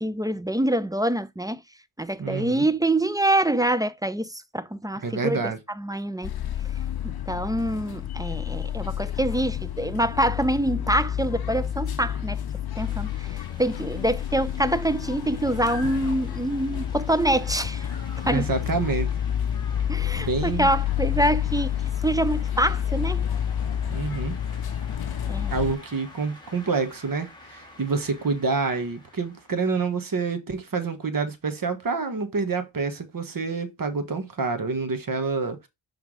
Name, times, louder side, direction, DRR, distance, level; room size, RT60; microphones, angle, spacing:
voice 1, 0.0-1.6 2.0-6.3 7.0-12.4 12.8-17.9 18.2-18.5 19.9-21.7 22.0-23.2 25.3-25.5, right 1 dB, 10° right, 0.3 m, -25 dB
voice 2, 2.2-2.7 5.0-5.6 18.2-19.1 20.2-20.7 23.9-24.3 25.5-35.7, right 4 dB, 45° right, 1.3 m, -27 dB
sound 1, 6.2-25.7, left 10 dB, 50° left, 0.6 m, -29 dB
sound 2, 12.7-29.8, left 1 dB, 10° left, 2.2 m, -48 dB
5.9 x 3.6 x 4.7 m
cardioid pair, 75°, 47 cm